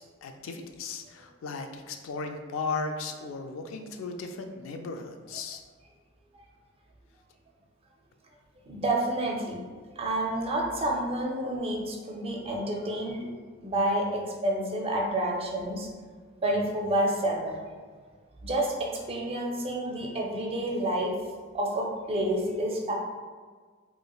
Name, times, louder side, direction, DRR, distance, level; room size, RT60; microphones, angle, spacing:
voice 1, 0.2-5.6, left 4 dB, 75° left, 6 dB, 0.3 m, -36 dB
voice 2, 8.7-9.6 9.9-13.3 13.6-15.9 16.4-17.7 18.4-21.1 21.5-22.9, right 1 dB, 30° right, 0 dB, 0.4 m, -29 dB
3.0 x 2.4 x 2.3 m, 1.5 s
head